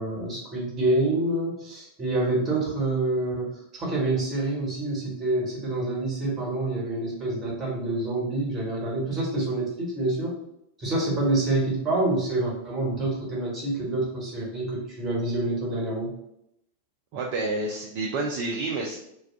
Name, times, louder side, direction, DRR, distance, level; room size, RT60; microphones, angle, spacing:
voice 1, 0.0-10.4 10.8-16.1, right 2 dB, 25° right, -2 dB, 1.2 m, -27 dB
voice 2, 17.1-19.0, right 2 dB, 45° right, -1 dB, 0.4 m, -29 dB
2.3 x 2.3 x 3.5 m, 0.79 s
figure-of-eight pair, 90°, 0 cm